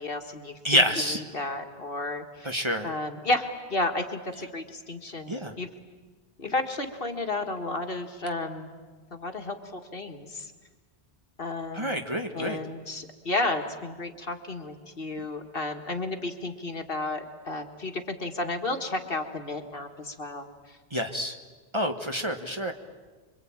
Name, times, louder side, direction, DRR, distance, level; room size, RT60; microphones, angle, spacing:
voice 1, 0.0-0.8 1.1-2.5 2.8-5.7 6.4-8.7 9.1-10.5 11.4-12.1 12.3-20.5, left 2 dB, 55° left, 5 dB, 2.1 m, -32 dB
voice 2, 0.6-1.2 2.4-2.9 5.3-5.5 11.7-12.6 20.9-21.3 21.7-22.7, equal, 25° right, 4 dB, 1.6 m, -27 dB
26.0 x 24.0 x 8.9 m, 1.3 s
omnidirectional pair, 1.2 m